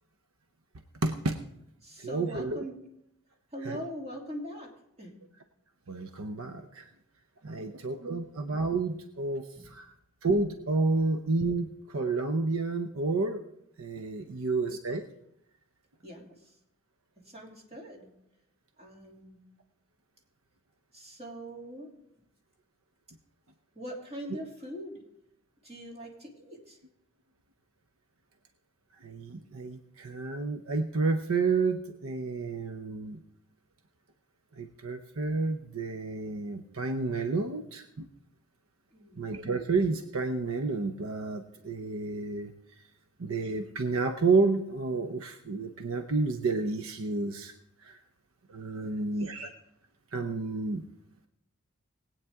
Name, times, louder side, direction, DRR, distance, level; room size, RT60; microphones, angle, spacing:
voice 1, 1.0-1.4 2.0-2.6 3.6-3.8 5.9-6.8 7.4-9.9 10.2-13.4 13.8-15.0 29.0-33.2 34.6-38.1 39.2-42.5 43.2-47.5 47.8-48.0 48.5-49.5 50.1-50.8, right 3 dB, 75° right, 6 dB, 0.7 m, -30 dB
voice 2, 1.8-2.8 3.5-4.7 5.0-5.1 7.5-8.2 9.6-9.7 14.2-14.4 16.0-16.5 17.2-18.1 18.8-19.4 20.9-21.9 23.7-25.0 25.6-26.8 38.9-39.2 48.8-49.1, equal, 30° right, -1 dB, 2.7 m, -42 dB
20.0 x 8.8 x 3.6 m, 0.81 s
head